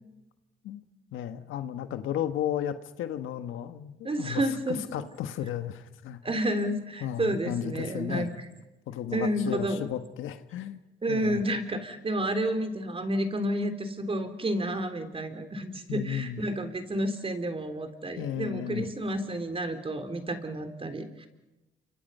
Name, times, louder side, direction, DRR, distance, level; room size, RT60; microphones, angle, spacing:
voice 1, 1.1-6.3 7.0-8.3 8.9-10.8 11.1-11.4 15.9-16.4 18.2-18.9, left 10 dB, 85° left, 9 dB, 1.5 m, -34 dB
voice 2, 4.0-4.8 6.2-8.3 9.1-9.8 11.0-21.3, right 1 dB, 30° right, 8 dB, 3.3 m, -30 dB
29.0 x 25.5 x 5.6 m, 1.0 s
cardioid pair, 90°, 20 cm